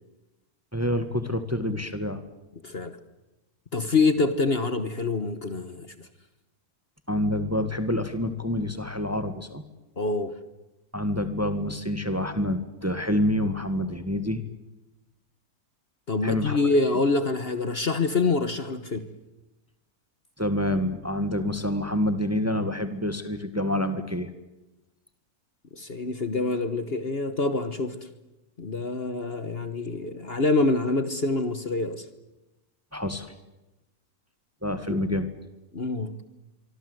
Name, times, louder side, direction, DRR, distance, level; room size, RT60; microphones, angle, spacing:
voice 1, 0.7-2.2 7.1-9.6 10.9-14.4 16.2-16.6 20.4-24.3 32.9-33.3 34.6-35.3, left 1 dB, 10° right, 9 dB, 1.6 m, -27 dB
voice 2, 2.6-3.0 3.7-6.1 10.0-10.3 16.1-19.1 25.7-28.0 28.6-32.0 34.9-35.0 35.7-36.1, left 3 dB, 40° left, 10 dB, 1.5 m, -26 dB
25.0 x 24.5 x 8.0 m, 1.0 s
omnidirectional pair, 1.6 m